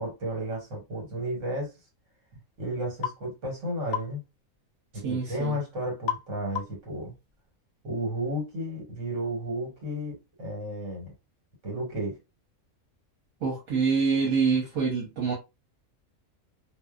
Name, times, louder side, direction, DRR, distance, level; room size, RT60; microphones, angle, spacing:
voice 1, 0.0-1.7 2.6-4.2 4.9-7.1 7.8-11.1 11.6-12.2, equal, 70° right, 1.5 m, -33 dB
sound 1, 3.0-3.2 3.9-4.1 6.1-6.3 6.6-6.9, left 9 dB, 60° left, 0.5 m, -31 dB
voice 2, 5.0-5.6 13.4-15.3, right 5 dB, 85° right, 1.2 m, -26 dB
2.7 x 2.1 x 2.3 m
omnidirectional pair, 1.4 m